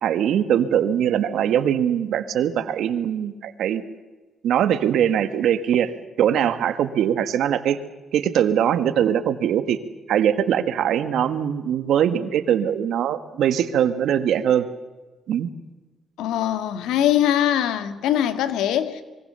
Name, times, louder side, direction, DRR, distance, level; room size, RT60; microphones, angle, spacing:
voice 1, 0.0-3.8 4.4-5.9 6.2-7.8 8.1-9.8 10.1-14.7 15.3-15.5, right 9 dB, 75° right, 1.7 m, -21 dB
voice 2, 16.2-19.0, left 11 dB, 90° left, 1.8 m, -22 dB
26.5 x 23.0 x 6.9 m
cardioid pair, 90°, 0 cm